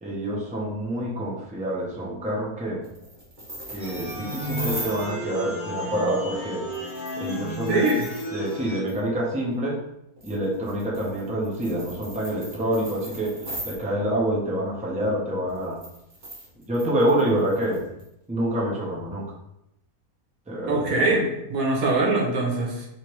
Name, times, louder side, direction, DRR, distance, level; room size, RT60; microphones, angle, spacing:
voice 1, 0.0-2.8 3.7-6.7 7.1-7.8 8.3-9.8 10.2-13.4 13.6-15.8 16.7-17.8 18.3-19.2 20.5-21.0, right 1 dB, 5° right, -4 dB, 0.7 m, -27 dB
sound 1, 2.8-5.1 6.7-8.6 8.9-9.0 10.2-13.8 15.5-18.1, right 1 dB, 35° right, 1.4 m, -38 dB
sound 2, 3.8-8.8, equal, 40° left, 1.0 m, -33 dB
voice 2, 7.7-8.1 20.7-22.9, right 2 dB, 75° right, 0 dB, 1.4 m, -23 dB
3.3 x 3.3 x 4.5 m, 0.83 s
omnidirectional pair, 1.5 m